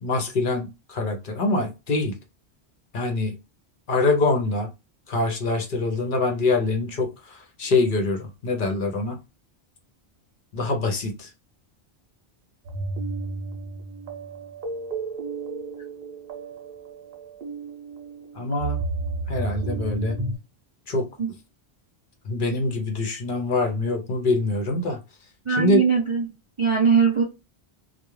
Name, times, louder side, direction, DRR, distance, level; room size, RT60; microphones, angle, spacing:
voice 1, 0.0-2.1 2.9-3.4 3.9-4.7 5.1-9.2 10.5-11.3 18.3-18.8 19.3-20.2 20.9-21.1 22.2-25.0 25.5-25.8, left 3 dB, 55° left, 0.7 m, -24 dB
sound 1, 12.6-20.4, right 3 dB, 60° right, 0.8 m, -32 dB
voice 2, 25.5-26.3 26.6-27.2, right 6 dB, 45° right, 0.4 m, -20 dB
2.3 x 2.1 x 3.0 m
omnidirectional pair, 1.1 m